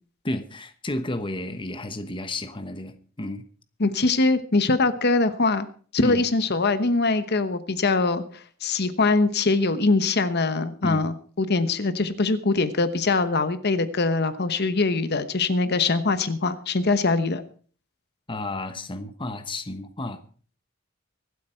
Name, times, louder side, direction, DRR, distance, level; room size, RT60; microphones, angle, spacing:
voice 1, 0.2-3.4 6.0-6.2 10.8-11.0 18.3-20.2, left 1 dB, 25° left, 9 dB, 1.1 m, -32 dB
voice 2, 3.8-5.7 5.9-17.4, left 3 dB, 55° left, 11 dB, 1.0 m, -23 dB
24.5 x 8.3 x 4.5 m, 0.43 s
head